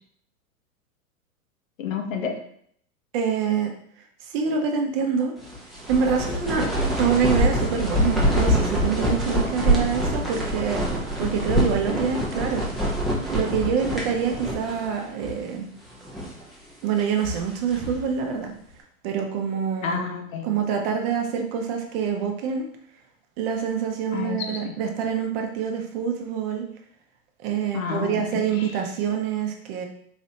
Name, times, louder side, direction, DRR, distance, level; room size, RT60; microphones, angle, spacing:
voice 1, 1.8-2.4 19.8-20.4 24.1-24.7 27.7-28.7, left 6 dB, 65° left, 4 dB, 0.9 m, -30 dB
voice 2, 3.1-3.7 4.2-5.3 5.9-6.7 7.0-10.8 11.2-12.6 13.3-15.7 16.8-18.5 19.0-20.0 20.4-22.7 23.4-26.6 27.4-29.8, right 7 dB, 45° right, 3 dB, 0.7 m, -26 dB
sound 1, 5.4-14.9 15.2-15.3 15.9-16.4 17.0-18.1, equal, ahead, 0.5 m, -25 dB
4.0 x 3.0 x 2.7 m, 0.65 s
hypercardioid pair, 105°, 43 cm